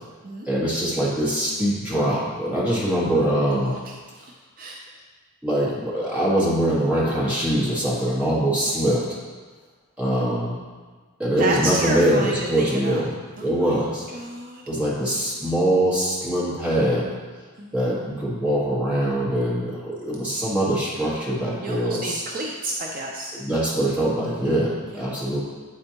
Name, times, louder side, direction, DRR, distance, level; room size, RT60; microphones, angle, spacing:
voice 1, 0.4-3.7 5.4-9.0 10.0-10.6 11.2-13.1 13.4-14.1 14.7-17.1 17.7-22.2 23.3-25.4, right 1 dB, 5° right, -8 dB, 1.5 m, -23 dB
voice 2, 11.3-13.0 13.4-13.8 14.1-14.6 17.6-17.7 21.6-23.3 24.9-25.1, right 2 dB, 40° right, -1 dB, 0.5 m, -30 dB
8.8 x 4.3 x 2.9 m, 1.4 s
head